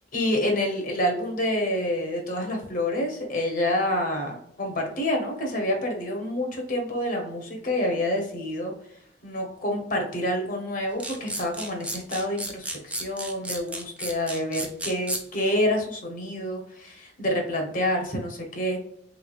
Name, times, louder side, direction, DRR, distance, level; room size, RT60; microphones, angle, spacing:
voice 1, 0.1-8.7 9.2-18.8, left 1 dB, 50° left, 2 dB, 0.9 m, -28 dB
sound 1, 11.0-15.2, right 1 dB, 5° right, 0.5 m, -32 dB
3.4 x 3.1 x 2.4 m, 0.71 s
head